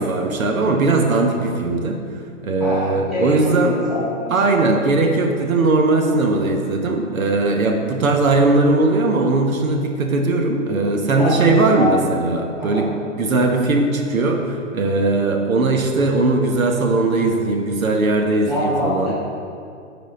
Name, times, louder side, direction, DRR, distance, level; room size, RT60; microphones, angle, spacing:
voice 1, 0.0-2.0 2.4-3.7 4.3-12.9 13.2-19.1, right 2 dB, 90° right, 2 dB, 1.2 m, -19 dB
voice 2, 2.6-4.3 11.1-11.9 12.6-12.8 18.4-19.1, left 1 dB, ahead, -10 dB, 1.3 m, -25 dB
10.5 x 4.2 x 3.9 m, 2.3 s
hypercardioid pair, 165°, 40 cm